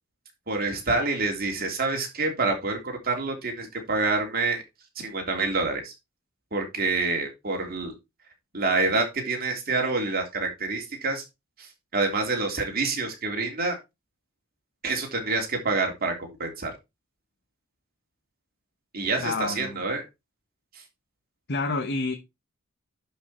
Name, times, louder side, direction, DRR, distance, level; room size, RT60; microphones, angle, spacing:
voice 1, 0.5-4.6 5.0-5.9 6.5-7.9 8.5-11.2 11.6-13.8 14.8-16.7 18.9-20.0, right 3 dB, 50° right, 3.4 m, -27 dB
voice 2, 19.2-19.8 21.5-22.2, left 3 dB, 55° left, 1.2 m, -28 dB
11.5 x 5.5 x 4.4 m
head